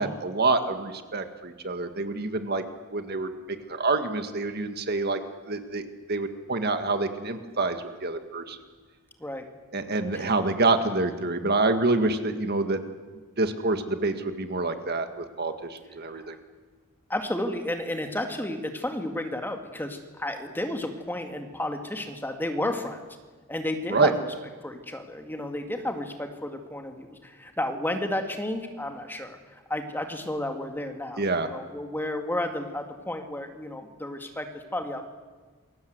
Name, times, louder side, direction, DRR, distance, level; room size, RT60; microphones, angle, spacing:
voice 1, 0.0-2.6 2.9-5.2 5.5-5.8 6.1-8.6 9.7-12.8 13.4-16.3 23.9-24.1 31.2-31.5, right 3 dB, 45° right, 7 dB, 1.9 m, -27 dB
voice 2, 17.1-23.0 23.5-24.1 24.6-29.4 29.7-35.1, left 1 dB, 10° left, 5 dB, 2.1 m, -32 dB
28.0 x 22.5 x 8.1 m, 1.4 s
head